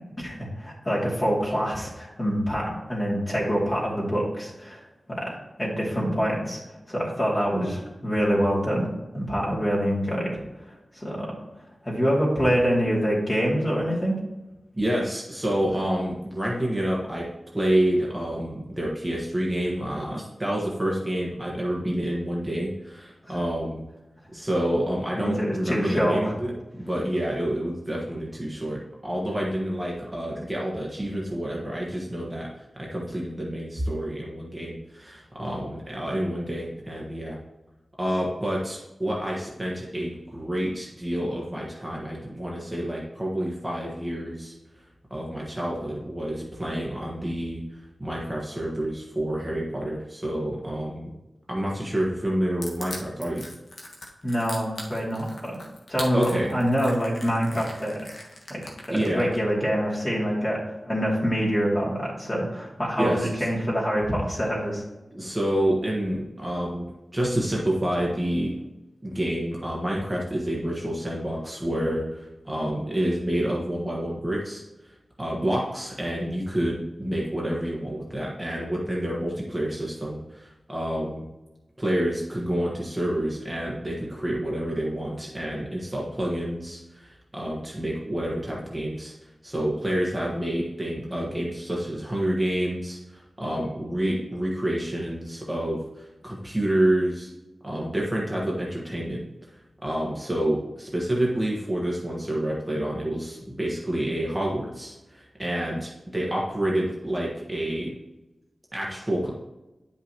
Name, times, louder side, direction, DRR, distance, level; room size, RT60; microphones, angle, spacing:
voice 1, 0.2-4.8 5.1-6.6 6.9-8.9 9.1-11.3 11.8-14.2 23.3-23.4 25.1-26.3 54.2-55.6 55.9-58.1 58.5-58.6 58.9-64.8, equal, 25° left, -5 dB, 2.7 m, -26 dB
voice 2, 14.7-17.3 17.5-23.8 24.3-37.4 38.0-44.6 45.1-51.1 51.5-53.5 56.1-56.5 58.9-59.3 63.0-63.4 65.1-66.9 67.1-68.6 69.0-74.6 75.2-81.2 81.8-89.1 89.4-97.3 97.6-99.2 99.8-107.9 108.7-109.3, right 1 dB, 15° right, -4 dB, 1.4 m, -28 dB
Crushing, 52.6-59.4, left 2 dB, 65° left, 1.4 m, -40 dB
9.8 x 5.7 x 3.0 m, 1.0 s
wide cardioid pair, 95°, 0 cm